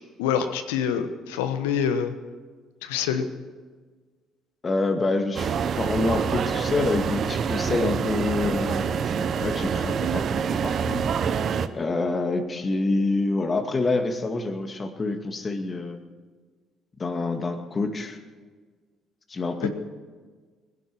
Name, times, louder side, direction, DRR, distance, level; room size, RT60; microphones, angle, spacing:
voice 1, 0.2-2.1 2.8-3.3 19.6-19.7, left 8 dB, 80° left, 9 dB, 1.2 m, -26 dB
voice 2, 4.6-11.0 11.7-16.0 17.0-18.2 19.3-19.7, left 3 dB, 35° left, 6 dB, 2.2 m, -27 dB
sound 1, 5.3-11.7, right 7 dB, 55° right, 0.9 m, -26 dB
20.0 x 11.0 x 6.3 m, 1.5 s
hypercardioid pair, 55°, 0 cm